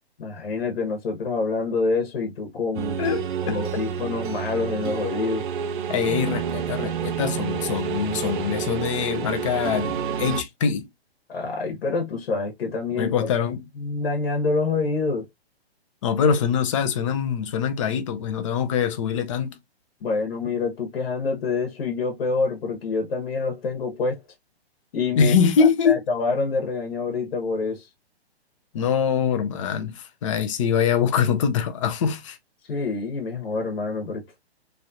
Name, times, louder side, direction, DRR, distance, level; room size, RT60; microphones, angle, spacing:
voice 1, 0.2-3.0 3.4-5.4 11.3-13.4 13.8-15.3 20.0-24.2 24.9-25.3 25.6-27.9 32.7-34.2, left 4 dB, 65° left, 1.2 m, -26 dB
sound 1, 2.7-10.4, right 8 dB, 50° right, 0.5 m, -29 dB
voice 2, 3.0-3.9 5.9-10.9 12.9-13.6 16.0-19.6 25.2-26.0 28.7-32.4, left 7 dB, 30° left, 0.5 m, -23 dB
3.1 x 2.4 x 2.7 m
hypercardioid pair, 150°, 32 cm